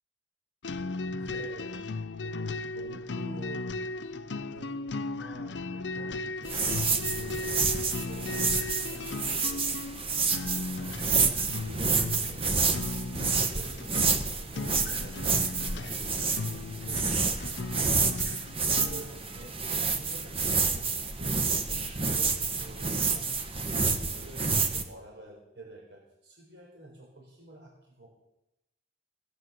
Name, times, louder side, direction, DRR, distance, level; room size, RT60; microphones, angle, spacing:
sound 1, 0.6-19.2, left 3 dB, 90° left, 0.6 m, -37 dB
voice 1, 0.8-3.7 4.5-9.6 10.7-12.6 13.2-19.6 19.9-23.4 23.7-28.1, right 2 dB, 85° right, -1 dB, 4.4 m, -49 dB
sound 2, 6.4-24.8, right 4 dB, 35° right, 1.3 m, -29 dB
17.0 x 9.9 x 6.8 m, 0.88 s
head